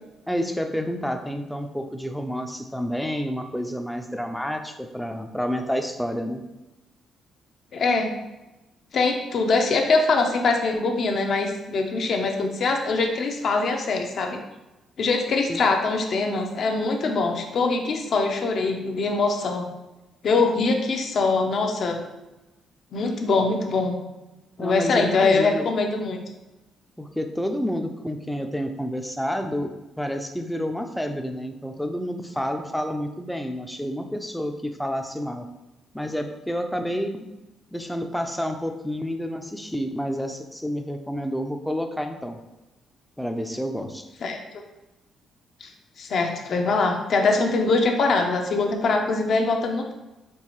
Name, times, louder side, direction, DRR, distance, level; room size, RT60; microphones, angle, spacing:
voice 1, 0.3-6.4 15.5-15.6 24.6-25.7 27.0-35.5 35.9-37.2 37.7-42.4 43.2-44.1, equal, 5° left, 5 dB, 0.5 m, -29 dB
voice 2, 7.7-8.1 8.9-14.4 15.0-19.7 20.2-22.0 22.9-23.9 24.6-26.2 44.2-44.4 45.6-45.7 46.0-49.9, left 3 dB, 60° left, 3 dB, 0.7 m, -23 dB
4.5 x 3.1 x 3.0 m, 1.0 s
cardioid pair, 90°, 0 cm